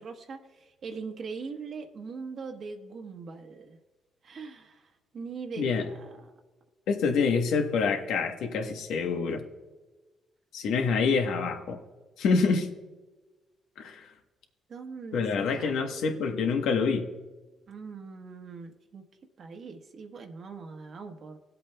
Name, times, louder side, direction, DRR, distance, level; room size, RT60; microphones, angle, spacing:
voice 1, 0.0-3.8 4.2-6.4 14.7-15.7 17.7-19.0 19.4-21.4, right 5 dB, 55° right, 4 dB, 1.1 m, -41 dB
voice 2, 6.9-9.4 10.5-11.8 12.2-12.7 13.8-14.0 15.1-17.1, left 5 dB, 85° left, 5 dB, 1.1 m, -26 dB
17.5 x 8.0 x 2.3 m, 1.2 s
cardioid pair, 90°, 0 cm